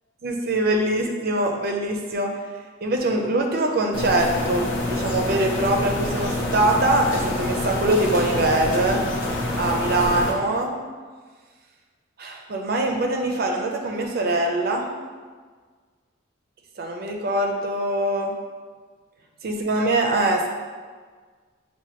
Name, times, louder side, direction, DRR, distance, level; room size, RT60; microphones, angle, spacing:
voice 1, 0.2-2.3 2.8-9.0 9.5-10.7 12.2-14.9 16.8-18.3 19.4-20.5, right 2 dB, 50° right, 2 dB, 0.4 m, -23 dB
sound 1, 3.9-10.3, left 1 dB, 70° left, 0.5 m, -26 dB
5.9 x 2.2 x 2.9 m, 1.5 s
head